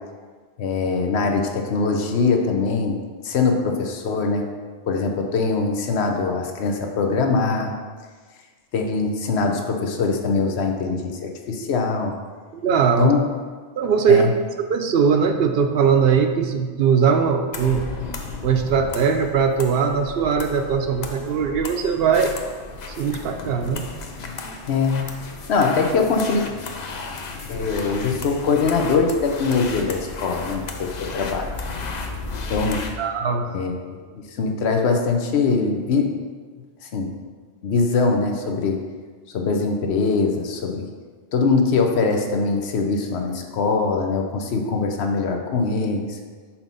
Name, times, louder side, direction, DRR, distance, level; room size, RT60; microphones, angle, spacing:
voice 1, 0.6-3.0 3.2-4.4 4.9-7.7 8.7-12.1 13.0-13.3 14.1-14.3 24.7-25.1 25.5-26.4 27.5-31.5 32.5-32.9 33.5-34.0 34.4-36.2 36.8-37.1 37.6-38.8 39.3-40.8 41.3-46.2, left 4 dB, 80° left, 3 dB, 1.0 m, -22 dB
voice 2, 12.5-13.1 13.8-14.2 14.6-18.0 18.4-22.3 23.0-23.9 33.0-33.6, right 6 dB, 70° right, 6 dB, 0.8 m, -20 dB
sound 1, 17.5-32.9, left 3 dB, 50° left, 0.7 m, -34 dB
5.7 x 4.4 x 5.4 m, 1.5 s
omnidirectional pair, 1.1 m